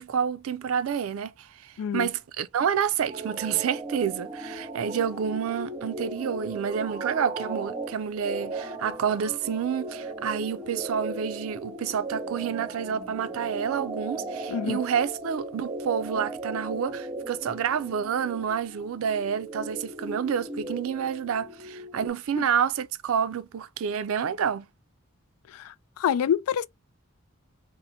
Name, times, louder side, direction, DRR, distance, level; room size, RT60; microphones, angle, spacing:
voice 1, 0.0-24.7, right 7 dB, 75° right, 0.4 m, -29 dB
voice 2, 1.8-2.1 14.5-14.8 25.5-26.7, left 8 dB, 90° left, 0.3 m, -27 dB
sound 1, 3.1-22.1, right 2 dB, 20° right, 0.6 m, -37 dB
4.1 x 2.1 x 2.8 m
head